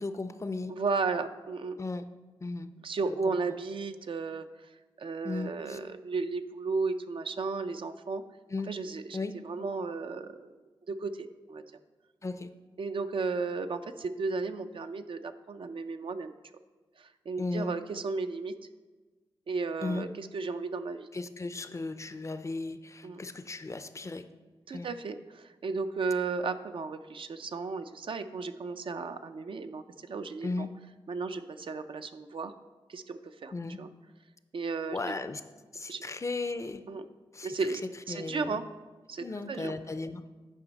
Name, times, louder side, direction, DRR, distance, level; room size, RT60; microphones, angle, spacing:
voice 1, 0.0-0.7 1.8-2.1 2.4-2.7 3.1-3.4 5.2-5.8 8.5-8.7 9.1-9.3 12.2-12.5 17.4-17.7 19.8-20.1 21.1-24.3 24.7-24.9 30.4-30.7 33.5-33.8 34.9-35.4 35.7-36.8 37.3-37.5 38.1-38.6 39.2-40.2, left 3 dB, 30° left, 11 dB, 0.4 m, -36 dB
voice 2, 0.7-1.8 2.8-4.7 5.0-8.2 8.7-9.2 9.4-10.5 10.9-11.6 12.8-16.3 17.0-18.5 19.5-21.1 23.0-23.2 24.7-30.7 31.1-32.5 32.9-33.5 33.8-33.9 34.5-35.1 35.9-36.0 36.9-37.1 37.4-37.8 38.1-38.7 39.1-39.7, right 4 dB, 65° right, 9 dB, 0.4 m, -34 dB
10.0 x 5.3 x 4.0 m, 1.3 s
wide cardioid pair, 75°, 10 cm